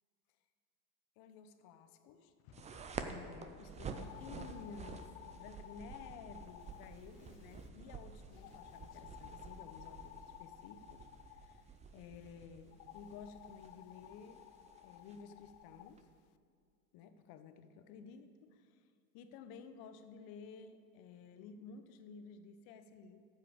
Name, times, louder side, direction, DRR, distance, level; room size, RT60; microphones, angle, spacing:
voice 1, 1.2-5.1 5.3-11.6 11.9-14.4 14.8-16.1 16.9-18.9 19.1-23.2, left 6 dB, 50° left, 9 dB, 1.0 m, -54 dB
sound 1, 2.5-16.0, right 5 dB, 15° right, 0.5 m, -50 dB
sound 2, 3.8-7.7 8.3-11.6 12.7-15.9, left 14 dB, 70° left, 0.5 m, -55 dB
13.5 x 7.6 x 5.1 m, 2.3 s
supercardioid pair, 120°, 46 cm